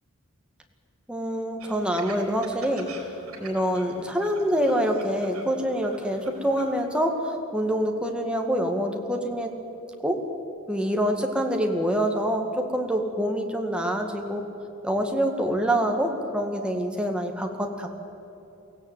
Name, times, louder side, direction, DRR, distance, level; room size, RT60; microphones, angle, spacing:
voice 1, 1.1-2.9 3.4-9.5 10.0-10.2 10.7-14.4 14.8-17.9, equal, 5° right, 3 dB, 2.1 m, -26 dB
sound 1, 1.6-6.9, right 3 dB, 85° right, 4.2 m, -45 dB
23.0 x 16.0 x 9.4 m, 2.9 s
head